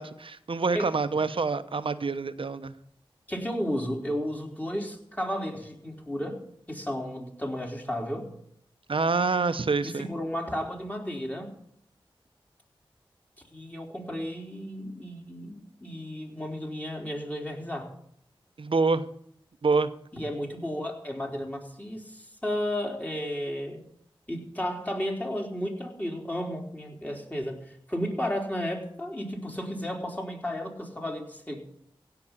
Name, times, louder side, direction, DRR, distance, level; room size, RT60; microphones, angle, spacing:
voice 1, 0.0-2.7 8.9-10.1 18.6-19.1 19.6-19.9, right 4 dB, 65° right, 11 dB, 0.9 m, -26 dB
voice 2, 3.3-6.4 6.7-8.3 9.8-11.5 13.5-17.9 20.1-23.8 24.3-31.6, equal, 15° left, 0 dB, 3.7 m, -33 dB
16.5 x 5.9 x 9.8 m, 0.69 s
cardioid pair, 45°, 10 cm